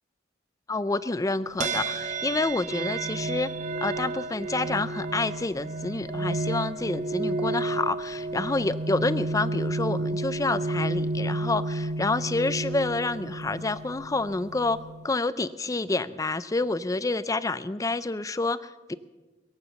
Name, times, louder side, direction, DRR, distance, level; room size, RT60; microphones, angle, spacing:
voice 1, 0.7-3.5 3.8-14.8 15.0-18.9, left 3 dB, 20° left, 15 dB, 0.4 m, -28 dB
sound 1, 1.6-15.1, right 2 dB, 40° right, 0.6 m, -31 dB
22.0 x 8.1 x 7.0 m, 1.3 s
head